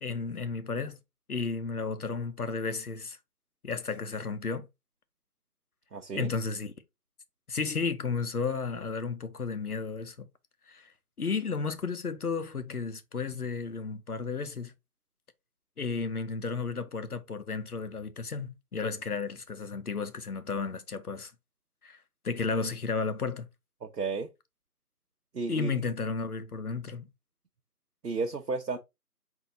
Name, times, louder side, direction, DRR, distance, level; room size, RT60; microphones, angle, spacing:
voice 1, 0.0-1.0 1.3-3.2 3.6-4.7 6.1-6.7 7.5-10.3 10.7-10.9 11.2-14.7 15.8-21.3 21.8-22.0 22.2-23.5 25.5-27.1, left 4 dB, 65° left, 0.8 m, -33 dB
voice 2, 5.9-6.3 23.8-24.3 25.3-25.7 28.0-28.8, right 4 dB, 90° right, 0.9 m, -32 dB
4.5 x 2.8 x 3.8 m
figure-of-eight pair, 170°, 48 cm